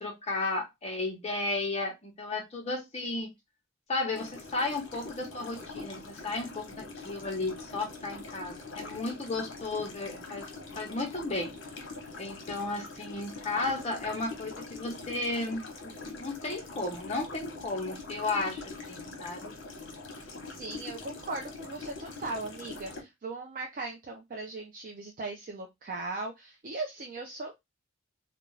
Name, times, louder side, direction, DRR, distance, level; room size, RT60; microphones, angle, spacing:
voice 1, 0.0-3.3 3.9-10.5 10.8-11.5 12.2-19.6, left 2 dB, 30° left, 0.7 m, -34 dB
sound 1, 4.1-23.0, left 3 dB, 65° left, 0.8 m, -43 dB
voice 2, 20.4-27.6, right 3 dB, 40° right, 0.4 m, -38 dB
2.4 x 2.2 x 3.0 m
head